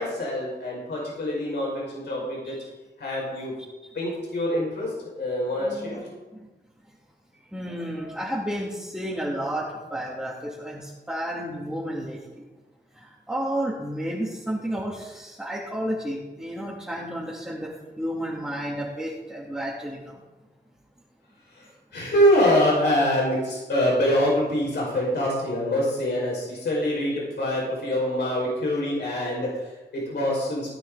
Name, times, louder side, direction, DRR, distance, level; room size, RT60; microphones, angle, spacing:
voice 1, 0.0-2.6 3.0-3.6 3.9-6.0 21.5-30.8, equal, 75° left, -4 dB, 5.6 m, -25 dB
voice 2, 5.6-6.0 6.3-6.5 7.5-12.4 12.9-20.2, equal, 5° right, -7 dB, 2.7 m, -32 dB
18.0 x 10.0 x 4.1 m, 1.1 s
wide cardioid pair, 130°, 18 cm